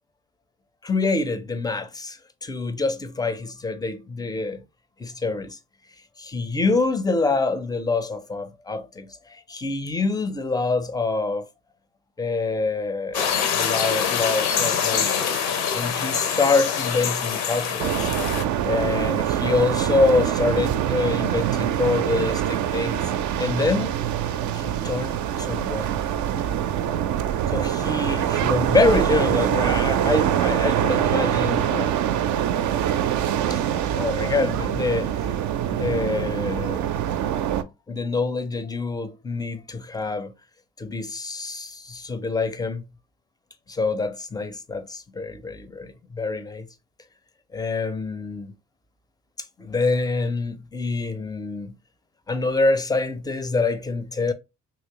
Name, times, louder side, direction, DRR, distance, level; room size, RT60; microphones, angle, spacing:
voice 1, 0.8-4.6 5.0-5.6 6.2-11.5 12.2-15.4 15.7-18.1 18.6-23.0 23.4-23.9 24.5-26.0 27.5-32.2 33.5-33.6 33.9-35.3 35.7-36.9 37.9-40.3 40.8-42.9 43.7-46.7 47.5-48.5 49.6-51.7 52.3-54.3, left 3 dB, 10° left, 0.5 m, -26 dB
sound 1, 13.1-18.4, left 7 dB, 70° left, 0.7 m, -25 dB
sound 2, 17.8-37.6, right 10 dB, 50° right, 0.5 m, -24 dB
3.0 x 2.9 x 2.8 m
hypercardioid pair, 50°, 37 cm